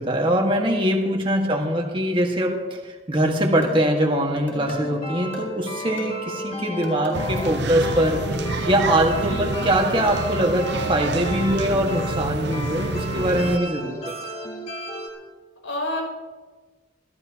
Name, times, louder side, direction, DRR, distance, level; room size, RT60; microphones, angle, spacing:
voice 1, 0.0-8.2 8.7-14.1, right 1 dB, 25° right, 1 dB, 1.7 m, -22 dB
sound 1, 3.2-8.7, equal, 10° left, 5.6 m, -36 dB
sound 2, 4.7-15.1, left 1 dB, 30° left, 2.9 m, -34 dB
sound 3, 7.1-13.6, right 3 dB, 55° right, 0.7 m, -29 dB
voice 2, 15.6-16.0, left 1 dB, 80° left, 0 dB, 6.4 m, -29 dB
26.5 x 14.5 x 2.9 m, 1.3 s
head